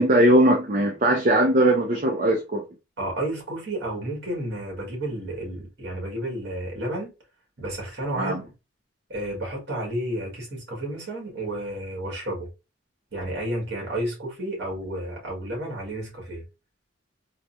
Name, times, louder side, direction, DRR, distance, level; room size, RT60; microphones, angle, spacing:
voice 1, 0.0-2.6 8.1-8.4, right 1 dB, 40° right, 0.5 m, -19 dB
voice 2, 3.0-7.1 7.6-8.5 9.1-12.5 13.1-16.4, right 1 dB, 55° right, 1.8 m, -31 dB
3.9 x 2.2 x 2.7 m
head